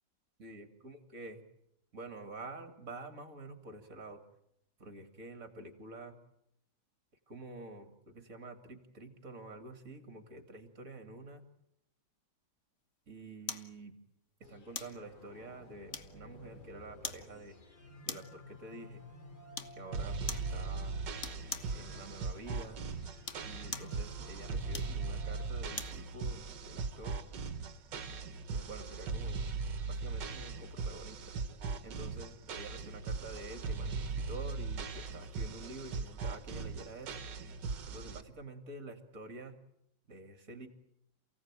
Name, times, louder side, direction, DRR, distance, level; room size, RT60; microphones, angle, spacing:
voice 1, 0.4-1.4 1.9-4.2 4.8-6.1 7.3-11.4 13.1-14.0 14.5-17.6 18.0-19.0 19.7-21.0 21.7-22.8 23.4-27.2 28.5-29.4 29.8-31.3 31.8-37.2 37.9-39.6 40.1-40.7, right 2 dB, 45° right, 6 dB, 3.1 m, -48 dB
sound 1, 13.5-13.7 14.7-15.0 15.9-16.4 17.0-17.3 18.1-18.4 19.5-19.8 20.3-20.5 21.2-21.8 23.1-24.0 24.7-26.0 26.5-26.6, left 5 dB, 45° left, 1.5 m, -42 dB
sound 2, 14.4-25.4, left 1 dB, 60° left, 3.5 m, -53 dB
sound 3, 19.9-38.2, right 4 dB, 70° right, 2.0 m, -39 dB
29.0 x 17.0 x 9.1 m, 0.78 s
omnidirectional pair, 2.0 m